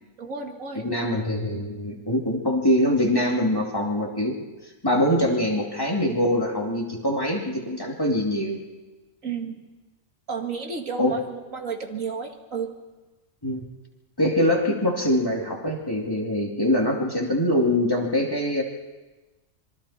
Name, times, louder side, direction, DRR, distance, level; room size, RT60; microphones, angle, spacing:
voice 1, 0.2-0.8 9.2-9.6 10.3-12.7, right 5 dB, 85° right, 3 dB, 2.4 m, -32 dB
voice 2, 0.7-4.3 4.8-8.6 11.0-11.2 13.4-13.6 14.2-18.6, left 1 dB, 15° left, -1 dB, 2.8 m, -23 dB
26.0 x 24.0 x 4.4 m, 1.2 s
omnidirectional pair, 1.4 m